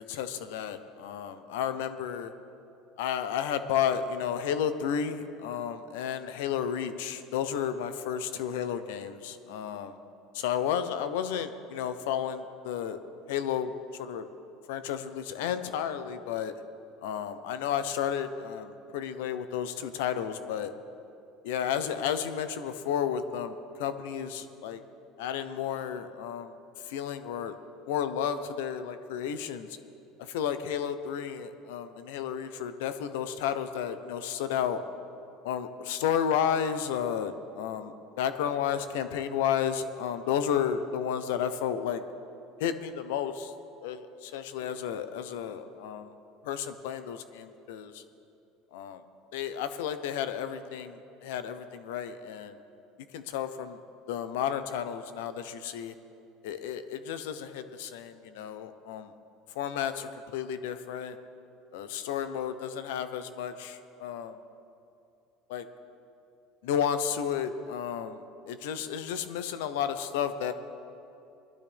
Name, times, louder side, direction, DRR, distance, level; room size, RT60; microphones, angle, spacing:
voice 1, 0.0-2.3 3.0-10.0 10.3-13.0 13.3-14.2 14.7-16.5 17.0-20.7 21.4-24.8 25.2-26.5 26.8-27.5 27.9-29.7 30.2-34.8 35.4-42.0 42.6-43.5 43.8-46.1 46.4-48.0 48.7-49.0 49.3-52.6 53.1-53.8 54.1-55.9 56.4-59.1 59.5-61.2 61.7-64.4 65.5-65.6 66.6-70.5, left 8 dB, 85° left, 11 dB, 0.7 m, -32 dB
20.0 x 12.0 x 3.4 m, 2.7 s
supercardioid pair, 130°, 0 cm